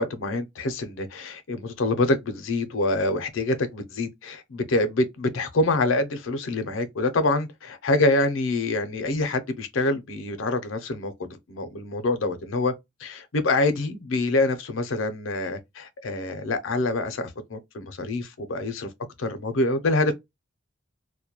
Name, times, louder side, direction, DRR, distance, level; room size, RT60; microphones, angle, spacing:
voice 1, 0.0-12.7 13.0-18.9 19.2-20.1, left 2 dB, 90° left, 0.5 m, -26 dB
2.2 x 2.1 x 2.8 m
head